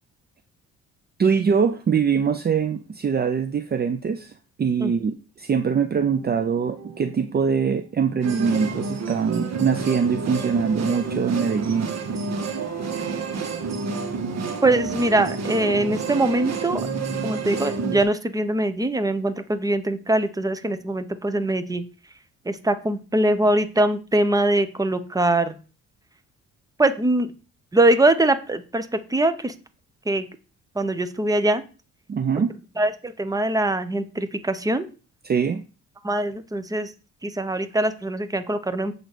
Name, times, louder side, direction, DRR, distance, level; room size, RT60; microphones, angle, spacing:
voice 1, 1.2-11.9 32.1-32.5 35.2-35.6, right 6 dB, 30° right, 9 dB, 0.6 m, -23 dB
sound 1, 6.1-13.0, right 6 dB, 85° right, 1.6 m, -44 dB
sound 2, 8.2-18.0, right 5 dB, 60° right, 1.6 m, -29 dB
voice 2, 14.6-16.8 17.2-21.8 22.4-25.6 26.8-27.3 27.7-29.5 30.1-30.2 30.7-31.6 32.3-32.4 32.8-34.8 36.0-36.9 37.2-38.9, right 1 dB, 10° right, 11 dB, 1.0 m, -22 dB
7.7 x 3.9 x 6.7 m, 0.35 s
cardioid pair, 90°, 30 cm